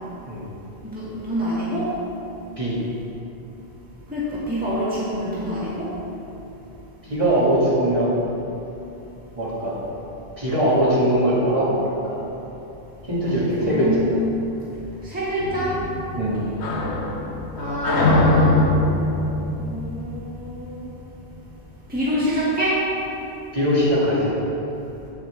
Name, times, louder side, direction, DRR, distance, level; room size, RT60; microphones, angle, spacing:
voice 1, 0.8-1.9 4.1-5.9 13.6-14.2 15.0-15.7 17.5-18.6 19.5-20.9 21.9-22.8, equal, 10° right, -9 dB, 1.7 m, -26 dB
voice 2, 7.1-8.2 9.4-9.8 10.4-12.2 13.1-14.0 16.1-16.4 23.5-24.3, right 1 dB, 30° right, -9 dB, 2.0 m, -21 dB
sound 1, 15.4-20.9, left 2 dB, 75° left, 1.2 m, -22 dB
8.4 x 8.2 x 3.4 m, 2.9 s
omnidirectional pair, 1.1 m